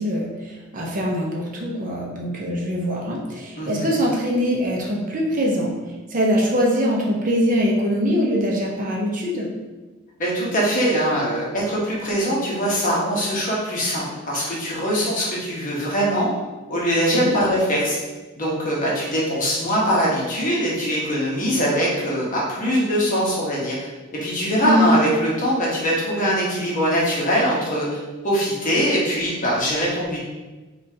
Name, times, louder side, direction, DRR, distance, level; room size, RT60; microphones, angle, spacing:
voice 1, 0.0-5.7 6.1-9.5 17.2-17.4 24.6-24.9, equal, 40° right, -2 dB, 0.7 m, -23 dB
voice 2, 10.2-16.3 16.7-18.0 18.4-23.8 24.1-30.2, equal, 40° left, -5 dB, 1.1 m, -22 dB
5.3 x 2.4 x 2.8 m, 1.2 s
head